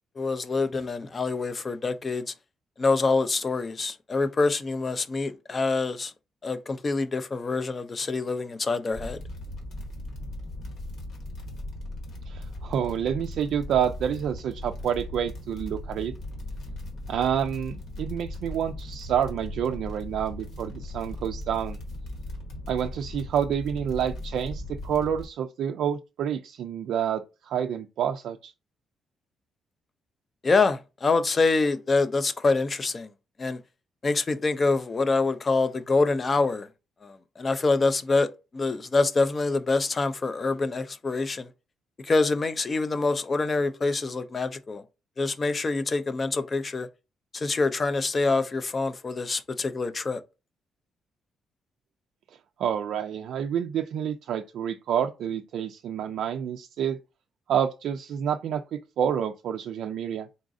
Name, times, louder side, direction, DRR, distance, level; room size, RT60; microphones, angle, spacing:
voice 1, 0.2-2.3 2.8-6.1 6.4-9.2 30.4-33.1 33.4-33.6 34.0-36.7 37.0-38.3 38.5-41.5 42.0-44.8 45.2-46.9 47.3-50.2, left 3 dB, 25° left, 0.4 m, -25 dB
sound 1, 8.9-25.2, left 1 dB, 60° left, 1.2 m, -38 dB
voice 2, 12.3-16.1 17.1-21.8 22.7-28.5 52.6-57.0 57.5-60.3, right 9 dB, 65° right, 0.3 m, -28 dB
3.9 x 3.6 x 2.5 m
cardioid pair, 175°, 0 cm